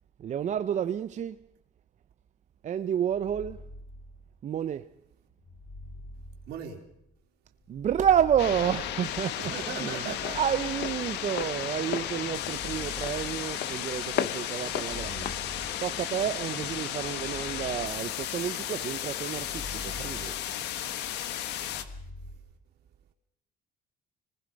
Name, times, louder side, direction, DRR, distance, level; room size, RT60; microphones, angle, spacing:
voice 1, 0.2-1.4 2.6-3.6 4.4-4.9 7.7-15.3 15.8-20.3, right 9 dB, 45° right, 0.7 m, -30 dB
sound 1, 3.1-4.6 5.4-7.1 7.6-9.4 10.0-11.5 12.3-14.0 14.6-16.2 17.0-18.6 19.2-21.0 21.5-22.4, left 1 dB, 25° left, 7.7 m, -45 dB
voice 2, 6.5-6.8 9.4-10.5, right 7 dB, 75° right, 3.9 m, -38 dB
Walk footsteps, 8.0-16.7, left 11 dB, 65° left, 1.0 m, -38 dB
sound 2, 8.4-21.8, left 11 dB, 85° left, 1.6 m, -34 dB
26.0 x 20.0 x 5.3 m
cardioid pair, 110°, 17 cm